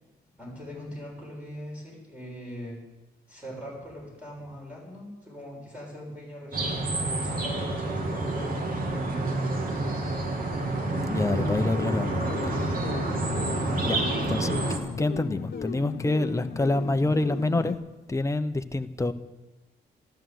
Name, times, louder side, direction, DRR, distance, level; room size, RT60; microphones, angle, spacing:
voice 1, 0.4-2.8 3.3-9.3 12.7-12.9, equal, 5° right, -3 dB, 7.2 m, -41 dB
sound 1, 6.5-14.8, right 2 dB, 50° right, 2.6 m, -28 dB
voice 2, 11.0-12.2 13.8-14.0 14.3-17.8 18.1-19.1, left 2 dB, 15° left, 8 dB, 0.9 m, -27 dB
sound 2, 11.3-17.8, left 6 dB, 55° left, 1.2 m, -36 dB
14.0 x 12.5 x 7.8 m, 1.1 s
cardioid pair, 115°, 19 cm